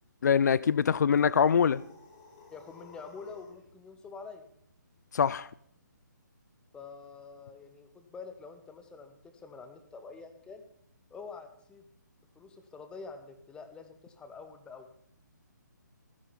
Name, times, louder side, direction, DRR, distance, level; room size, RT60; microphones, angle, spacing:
voice 1, 0.2-1.8 5.1-5.5, left 7 dB, 60° left, 0.4 m, -24 dB
sound 1, 1.1-3.7, left 3 dB, 35° left, 4.5 m, -55 dB
voice 2, 2.5-4.5 6.7-10.6 11.1-11.8 12.4-14.9, left 4 dB, 10° left, 0.9 m, -47 dB
14.0 x 10.0 x 4.2 m
figure-of-eight pair, 140°, 10 cm